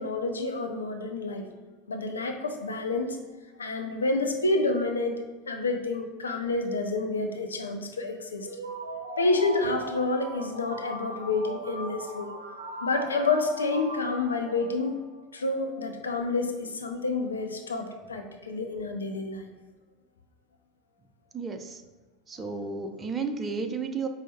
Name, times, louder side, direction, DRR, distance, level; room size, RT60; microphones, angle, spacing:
voice 1, 0.0-1.4 1.9-3.2 3.6-5.2 5.5-8.5 9.2-12.5 12.8-15.0 15.3-19.5 22.5-22.6, left 3 dB, 80° left, 4 dB, 0.4 m, -29 dB
sound 1, 8.4-15.3, right 2 dB, 80° right, 0.5 m, -39 dB
voice 2, 21.3-21.8 22.3-24.1, right 4 dB, 25° right, 7 dB, 0.4 m, -32 dB
4.7 x 2.0 x 4.0 m, 1.3 s
figure-of-eight pair, 75°, 0 cm